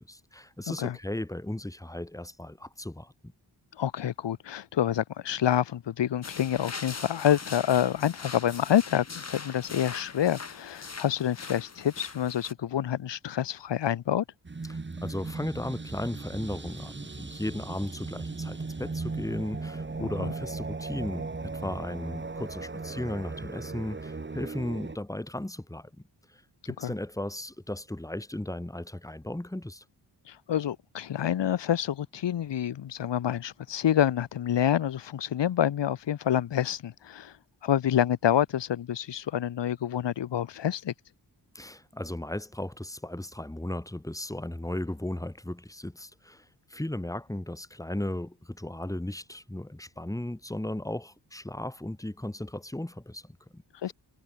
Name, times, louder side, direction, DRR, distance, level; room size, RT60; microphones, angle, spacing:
voice 1, 0.1-3.1 14.7-25.9 26.3-29.8 41.5-46.4 46.7-53.6 53.9-54.0, left 1 dB, 10° left, 3.7 m, -36 dB
voice 2, 3.8-14.2 20.0-20.3 26.8-26.9 30.3-37.3 37.6-40.9 53.8-53.9, left 10 dB, 90° left, 1.2 m, -27 dB
sound 1, 6.2-12.5, left 4 dB, 40° left, 5.0 m, -41 dB
sound 2, 14.4-25.0, right 3 dB, 25° right, 3.6 m, -37 dB
wide cardioid pair, 160°, 41 cm